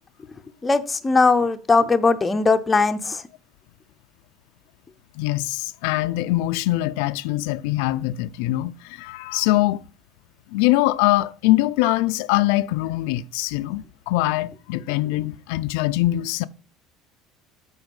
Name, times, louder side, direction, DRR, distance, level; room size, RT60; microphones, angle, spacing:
voice 1, 0.6-3.2, left 4 dB, 15° left, 0.6 m, -19 dB
voice 2, 5.2-9.8 10.5-16.5, left 17 dB, 85° left, 0.4 m, -23 dB
8.0 x 4.7 x 5.3 m
cardioid pair, 165°, 0 cm